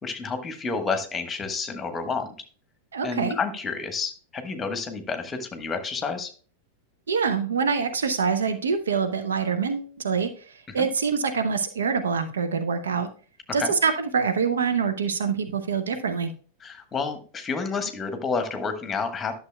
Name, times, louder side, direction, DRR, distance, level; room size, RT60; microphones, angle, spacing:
voice 1, 0.0-2.3 3.0-6.3 10.7-10.9 13.6-13.7 16.6-19.4, left 4 dB, 20° left, 8 dB, 1.2 m, -30 dB
voice 2, 2.9-3.4 7.1-10.3 10.7-13.1 13.5-16.3, right 5 dB, 65° right, 8 dB, 0.7 m, -25 dB
11.5 x 6.7 x 2.3 m, 0.38 s
figure-of-eight pair, 90°, 0 cm